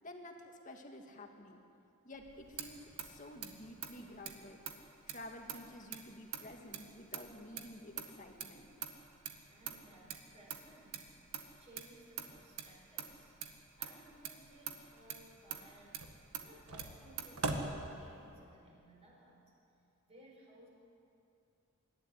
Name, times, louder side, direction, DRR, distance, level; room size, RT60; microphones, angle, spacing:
voice 1, 0.0-1.6 2.0-4.6 5.1-8.7, left 1 dB, 35° left, 3 dB, 2.0 m, -51 dB
Motor vehicle (road), 2.2-18.4, right 5 dB, 80° right, 1.8 m, -45 dB
voice 2, 9.2-11.2 11.6-13.3 13.8-16.1 16.4-19.4 20.1-20.7, right 1 dB, 30° right, -3 dB, 4.6 m, -60 dB
25.5 x 12.5 x 9.8 m, 2.7 s
head